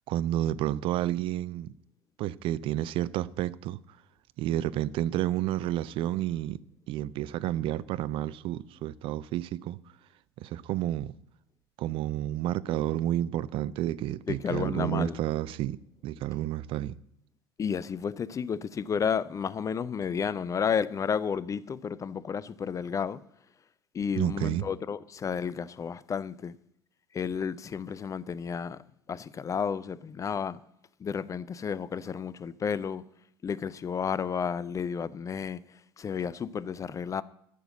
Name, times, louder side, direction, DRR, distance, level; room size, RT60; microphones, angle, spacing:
voice 1, 0.1-1.7 2.2-3.8 4.4-6.6 6.9-9.8 10.4-11.1 11.8-17.0 24.1-24.6, right 13 dB, 45° right, 0.5 m, -30 dB
voice 2, 14.3-15.2 17.6-23.2 23.9-26.6 27.1-28.8 29.1-30.6 31.0-33.0 33.4-37.2, left 7 dB, 25° left, 0.5 m, -32 dB
13.0 x 7.0 x 7.8 m
figure-of-eight pair, 70°, 13 cm